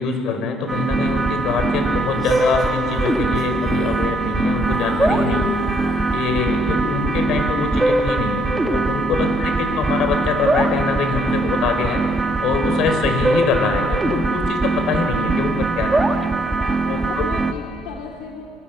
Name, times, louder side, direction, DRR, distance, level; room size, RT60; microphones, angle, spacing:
voice 1, 0.0-5.4 6.1-12.0 12.4-16.1 17.2-17.3, left 5 dB, 50° left, 5 dB, 5.5 m, -23 dB
sound 1, 0.7-17.5, right 3 dB, 10° right, 1.7 m, -21 dB
Female singing, 2.1-4.4 4.7-6.7 7.2-7.5, left 2 dB, 10° left, 7.7 m, -34 dB
voice 2, 5.3-5.8 9.2-9.6 16.6-18.5, left 6 dB, 70° left, 0 dB, 2.7 m, -36 dB
28.0 x 26.5 x 8.1 m, 2.6 s
cardioid pair, 150°, 0 cm